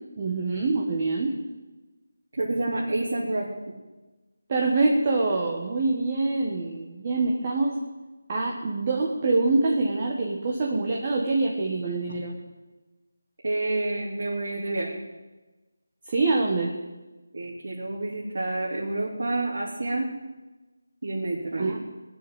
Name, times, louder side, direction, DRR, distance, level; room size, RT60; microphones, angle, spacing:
voice 1, 0.2-1.4 4.5-7.8 8.3-12.3 16.1-16.8 21.6-21.8, right 3 dB, 25° right, -1 dB, 1.5 m, -25 dB
voice 2, 2.3-3.7 13.4-15.0 17.3-20.1 21.0-21.7, right 2 dB, 60° right, -5 dB, 3.3 m, -29 dB
20.5 x 7.1 x 9.2 m, 1.2 s
figure-of-eight pair, 175°, 0 cm